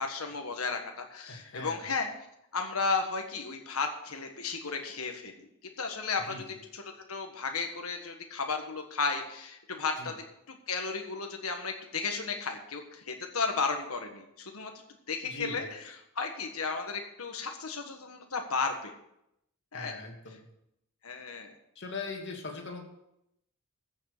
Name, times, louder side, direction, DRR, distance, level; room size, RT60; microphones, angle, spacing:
voice 1, 0.0-2.1 2.5-5.5 5.8-6.4 6.7-10.1 10.5-14.7 15.1-15.8 16.1-18.9 19.7-20.0 21.0-21.5, left 4 dB, 80° left, 4 dB, 1.5 m, -34 dB
voice 2, 1.3-1.8 6.3-6.4 10.0-10.1 15.2-15.7 19.7-20.4 21.8-22.8, left 3 dB, 55° left, 2 dB, 2.5 m, -40 dB
14.5 x 6.5 x 6.7 m, 0.81 s
head